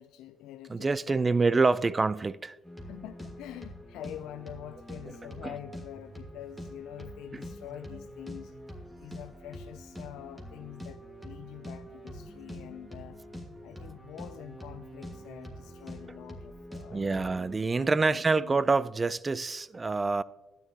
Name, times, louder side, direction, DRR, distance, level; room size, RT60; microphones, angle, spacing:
voice 1, 0.0-1.7 2.9-8.5 9.0-13.2 13.6-17.2 17.8-18.6, left 12 dB, 80° left, 0.3 m, -46 dB
voice 2, 0.7-2.6 16.9-20.2, right 3 dB, 25° right, 0.3 m, -26 dB
sound 1, 2.6-17.6, equal, 10° right, 1.6 m, -45 dB
12.5 x 9.5 x 2.8 m
cardioid pair, 100°, 0 cm